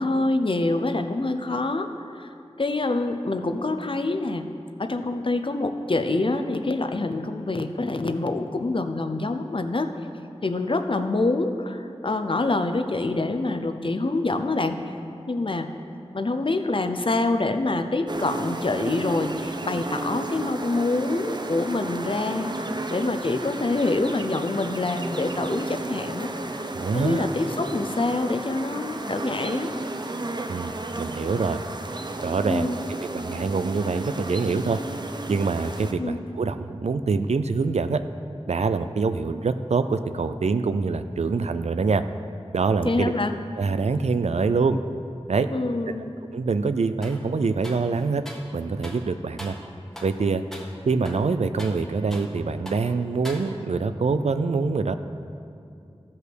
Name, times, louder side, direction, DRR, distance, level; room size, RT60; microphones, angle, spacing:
voice 1, 0.0-1.9 2.2-2.3 2.6-4.5 4.8-9.9 10.4-14.8 15.3-15.7 16.1-22.5 22.9-26.7 26.9-29.7 32.4-32.9 36.0-36.2 42.8-43.3 45.5-46.1, left 2 dB, 55° left, 7 dB, 0.7 m, -26 dB
sound 1, 18.1-35.9, right 2 dB, 45° right, 0.7 m, -33 dB
voice 2, 26.7-27.3 30.5-31.6 32.2-32.7 33.1-34.8 35.3-38.0 38.5-42.0 42.5-43.1 43.6-44.8 45.3-45.5 46.3-48.2 48.5-49.5 50.0-50.4 50.9-54.9, right 4 dB, 90° right, 10 dB, 0.4 m, -25 dB
sound 2, 47.0-47.2 47.6-48.5 48.8-49.1 49.4-49.7 50.0-50.2 50.5-50.7 51.0-52.4 52.7-52.9 53.2-53.8, equal, 5° left, 1.4 m, -41 dB
14.0 x 5.5 x 6.2 m, 2.5 s
wide cardioid pair, 50°, 11 cm